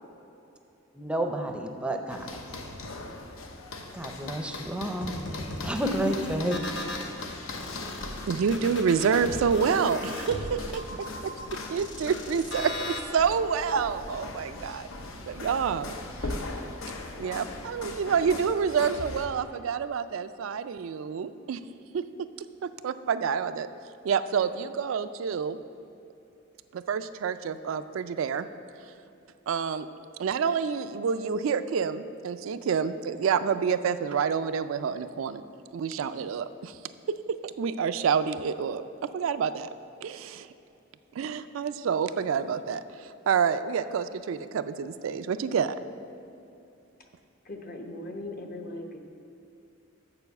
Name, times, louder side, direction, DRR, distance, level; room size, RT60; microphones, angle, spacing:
voice 1, 0.9-2.3 3.9-5.1 5.6-6.6, right 1 dB, 5° right, 4 dB, 0.5 m, -30 dB
sound 1, 2.1-19.3, left 2 dB, 80° left, 0.8 m, -40 dB
sound 2, 5.0-7.1 7.5-13.0, left 1 dB, 65° left, 1.0 m, -38 dB
voice 2, 8.3-11.3 11.7-14.9 15.3-15.9 16.2-16.4 17.2-21.6 21.9-22.0 22.8-23.7 24.0-25.6 26.7-28.5 29.5-29.9 30.2-35.4 35.7-36.8 37.4-39.7 40.0-40.5 41.1-45.8, right 6 dB, 75° right, 11 dB, 0.3 m, -28 dB
voice 3, 47.4-49.0, left 2 dB, 45° left, 3 dB, 0.9 m, -39 dB
6.9 x 6.1 x 7.0 m, 2.7 s
head